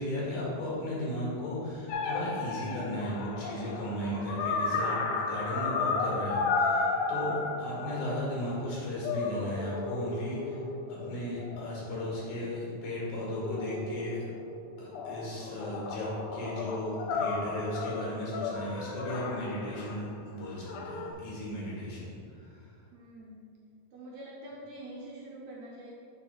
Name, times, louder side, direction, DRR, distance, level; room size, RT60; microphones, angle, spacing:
voice 1, 0.0-10.6 10.9-14.2 14.8-22.7, left 1 dB, 65° left, -6 dB, 3.2 m, -35 dB
sound 1, 1.9-8.7 9.0-12.3 13.2-14.5 14.9-20.1 20.7-21.1, left 4 dB, 90° left, 2.6 m, -34 dB
voice 2, 22.9-23.5 23.9-25.9, right 1 dB, 70° right, -4 dB, 2.0 m, -45 dB
7.4 x 4.3 x 5.8 m, 2.3 s
omnidirectional pair, 4.1 m